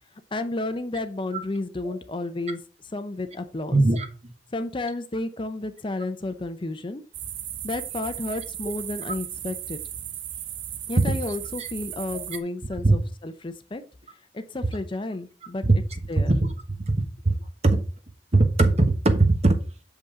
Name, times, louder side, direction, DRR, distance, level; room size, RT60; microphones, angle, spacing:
voice 1, 0.3-2.6 2.9-3.8 4.5-7.0 7.6-9.8 10.9-13.8 14.3-15.6 16.1-16.3, left 2 dB, 25° left, 10 dB, 0.5 m, -31 dB
voice 2, 3.7-4.1 11.6-11.7 12.1-12.2 12.8-13.0 15.6-15.8 16.3-16.4 16.9-17.0 17.2-17.3 17.6-17.8 18.3-19.6, right 2 dB, 35° right, 8 dB, 1.0 m, -19 dB
sound 1, 7.1-12.4, right 10 dB, 80° right, 0.7 m, -36 dB
7.0 x 5.4 x 3.7 m, 0.36 s
head